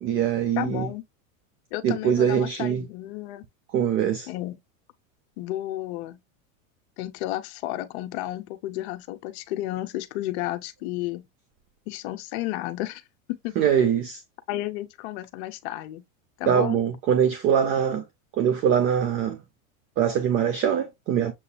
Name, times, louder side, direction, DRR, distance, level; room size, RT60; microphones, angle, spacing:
voice 1, 0.0-0.9 1.8-2.9 3.7-4.3 13.6-14.2 16.4-18.0 18.4-19.4 20.0-21.3, right 8 dB, 30° right, 0.5 m, -23 dB
voice 2, 0.6-1.0 1.7-3.4 4.3-4.6 5.4-6.2 7.0-11.3 11.9-13.0 13.3-13.6 14.5-16.0 16.4-16.8, left 15 dB, 50° left, 0.7 m, -32 dB
6.9 x 2.7 x 2.3 m
supercardioid pair, 145°, 41 cm